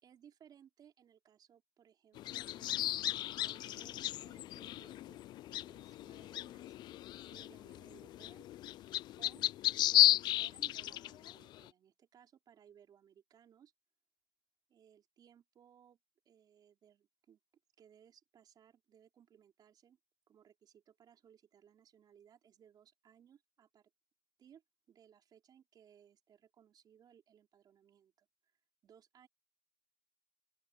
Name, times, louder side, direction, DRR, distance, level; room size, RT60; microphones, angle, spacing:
voice 1, 0.0-2.8 3.4-6.7 7.2-8.4 9.2-9.4 9.9-13.7 14.7-16.0 16.2-17.4 17.8-20.0 20.3-23.9 24.4-29.3, right 9 dB, 65° right, 4.2 m, -64 dB
sound 1, 2.2-11.6, left 14 dB, 85° left, 0.4 m, -34 dB
open air
cardioid pair, 85°, 7 cm